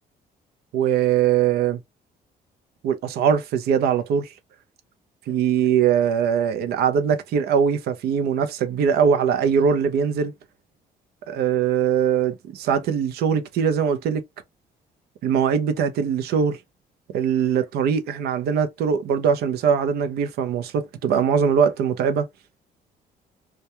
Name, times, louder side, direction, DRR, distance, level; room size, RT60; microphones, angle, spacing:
voice 1, 0.7-1.8 2.8-4.3 5.3-10.3 11.3-14.2 15.2-16.6 17.1-22.3, right 7 dB, 75° right, 0.5 m, -21 dB
2.2 x 2.2 x 2.8 m
cardioid pair, 160°, 16 cm